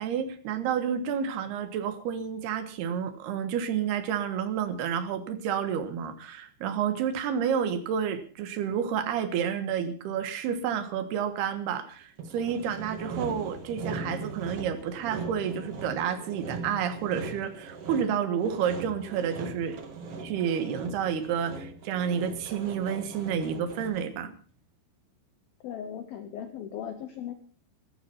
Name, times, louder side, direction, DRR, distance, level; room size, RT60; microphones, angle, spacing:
voice 1, 0.0-19.8 20.2-24.3, right 8 dB, 65° right, 9 dB, 3.2 m, -30 dB
Sawing, 12.2-24.2, right 4 dB, 50° right, 1.9 m, -39 dB
voice 2, 25.6-27.3, left 9 dB, 70° left, 9 dB, 2.3 m, -38 dB
15.0 x 14.0 x 5.7 m, 0.40 s
omnidirectional pair, 5.5 m